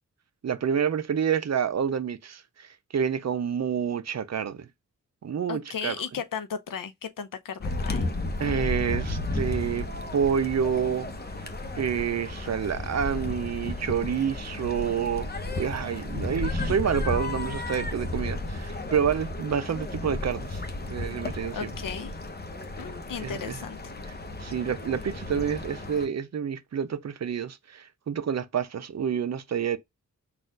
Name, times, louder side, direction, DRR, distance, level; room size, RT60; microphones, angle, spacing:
voice 1, 0.4-4.7 5.2-5.9 8.4-9.9 10.1-11.1 11.8-15.3 15.6-20.6 20.9-21.7 23.2-23.6 24.4-29.8, right 7 dB, 55° right, 0.6 m, -28 dB
voice 2, 5.5-8.0 21.5-22.1 22.8-23.8, left 6 dB, 85° left, 0.7 m, -35 dB
sound 1, 7.6-26.1, left 2 dB, 30° left, 0.8 m, -33 dB
4.1 x 2.5 x 3.8 m
cardioid pair, 70°, 32 cm